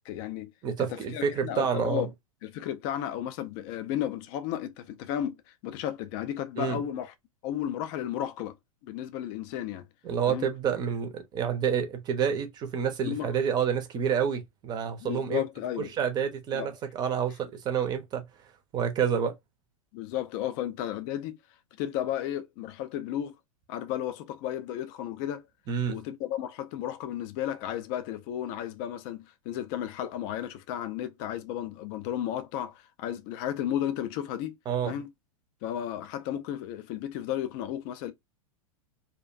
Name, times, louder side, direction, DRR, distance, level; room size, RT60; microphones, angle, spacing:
voice 1, 0.1-0.5 0.8-2.1 2.4-5.4 5.6-7.1 7.4-8.6 8.8-9.8 10.3-10.5 13.0-13.3 15.0-15.9 16.5-16.7 19.9-21.3 21.8-23.3 23.7-25.4 25.9-34.6 34.8-35.1 35.6-38.1, left 11 dB, 35° left, 0.4 m, -33 dB
voice 2, 0.6-2.1 6.6-6.8 10.0-15.4 15.8-18.2 18.7-19.3 25.7-26.0 34.7-35.0, right 7 dB, 20° right, 0.6 m, -28 dB
2.5 x 2.1 x 2.4 m
figure-of-eight pair, 95°, 18 cm